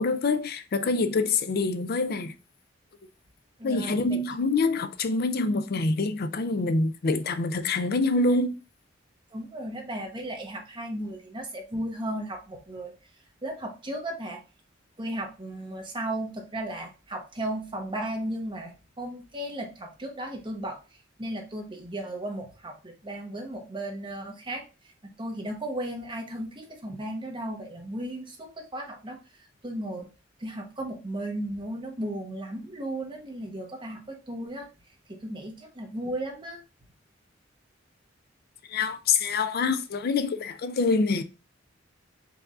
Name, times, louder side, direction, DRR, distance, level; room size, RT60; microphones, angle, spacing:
voice 1, 0.0-2.3 3.6-8.6 38.7-41.2, left 3 dB, 50° left, 0.5 m, -26 dB
voice 2, 3.6-4.2 9.3-12.9 13.4-14.4 15.0-20.8 21.2-24.6 25.0-29.2 29.6-30.1 30.4-34.7 35.1-36.6, right 1 dB, 25° right, 1.0 m, -35 dB
4.6 x 2.7 x 3.5 m
head